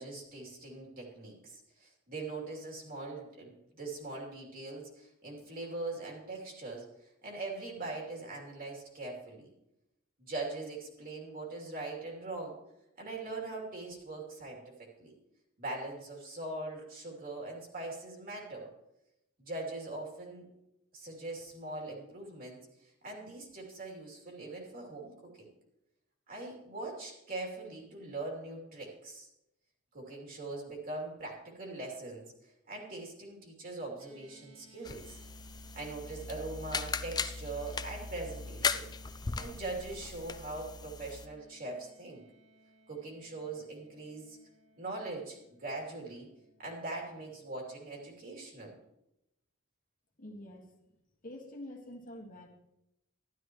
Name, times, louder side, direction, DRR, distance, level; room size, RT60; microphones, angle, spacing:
voice 1, 0.0-6.8 7.2-9.5 10.2-12.6 13.0-15.1 15.6-18.7 19.4-20.5 20.9-22.6 23.0-25.5 26.3-29.3 29.9-32.3 32.7-35.2 35.7-38.9 39.3-42.2 42.9-44.4 44.8-46.3 46.6-48.8, right 2 dB, 45° right, -1 dB, 3.0 m, -41 dB
sound 1, 34.0-48.4, right 4 dB, 75° right, 2.9 m, -61 dB
sound 2, 34.8-41.3, left 5 dB, 20° left, 0.4 m, -38 dB
voice 2, 50.2-50.7 51.2-52.5, left 1 dB, 40° left, 0 dB, 1.7 m, -46 dB
12.5 x 12.5 x 3.1 m, 0.85 s
head